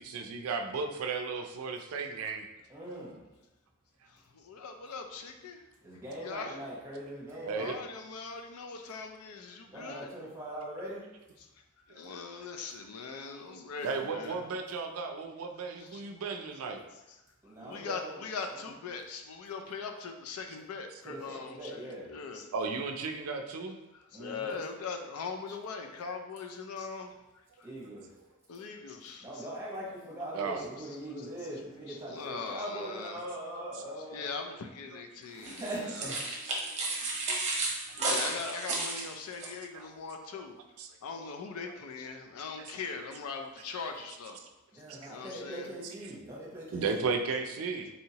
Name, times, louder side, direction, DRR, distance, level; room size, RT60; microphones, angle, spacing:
voice 1, 0.0-2.5 7.5-7.8 11.9-12.0 13.8-16.8 22.5-23.8 30.3-30.6 33.7-33.8 34.3-34.4 39.7-39.9 40.8-41.2 41.6-41.7 43.8-43.9 44.9-45.1 46.7-47.9, right 4 dB, 75° right, 5 dB, 0.4 m, -35 dB
voice 2, 2.7-3.2 5.8-7.7 9.7-11.0 17.4-18.2 18.5-18.6 21.0-22.1 24.1-24.6 27.6-28.0 29.2-34.3 35.2-36.2 44.7-47.1, right 1 dB, 10° right, -6 dB, 1.1 m, -41 dB
voice 3, 4.1-5.6 5.9-6.6 7.6-10.1 11.4-11.5 11.9-14.4 15.8-16.0 17.6-22.5 23.9-27.2 27.6-27.7 28.5-29.5 30.8-30.9 31.9-33.2 34.1-36.4 37.4-40.5 41.0-44.4 44.7-45.7, left 4 dB, 85° left, 5 dB, 0.4 m, -41 dB
sound 1, 35.4-39.5, right 2 dB, 30° right, 0.7 m, -33 dB
4.2 x 2.8 x 2.8 m, 1.0 s
head